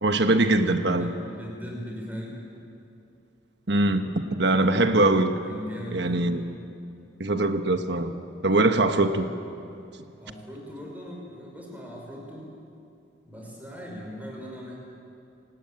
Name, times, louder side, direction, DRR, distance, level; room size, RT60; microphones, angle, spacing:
voice 1, 0.0-1.1 3.7-5.4 5.9-6.4 7.2-8.1 8.4-9.3, right 2 dB, 60° right, 7 dB, 1.2 m, -22 dB
voice 2, 1.0-2.4 4.7-4.9 5.4-6.4 8.6-8.9 10.2-12.5 13.2-14.7, equal, 10° right, -2 dB, 5.5 m, -39 dB
27.5 x 18.5 x 8.9 m, 2.6 s
head